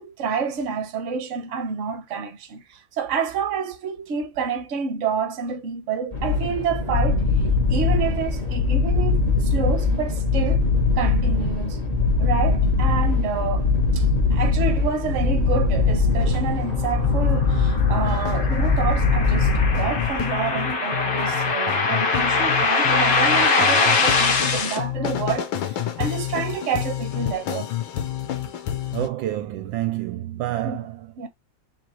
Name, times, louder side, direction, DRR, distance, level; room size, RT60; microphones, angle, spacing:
voice 1, 0.0-10.6 11.0-11.9 12.2-27.7 30.6-30.9 31.2-31.3, right 6 dB, 45° right, 1.0 m, -29 dB
sound 1, 6.1-20.4, left 3 dB, 25° left, 1.1 m, -21 dB
sound 2, 16.2-29.1, left 11 dB, 75° left, 1.5 m, -29 dB
sound 3, 16.9-24.8, left 4 dB, 60° left, 1.6 m, -23 dB
voice 2, 28.9-31.1, right 14 dB, 75° right, 1.2 m, -28 dB
4.8 x 3.2 x 2.9 m
omnidirectional pair, 2.2 m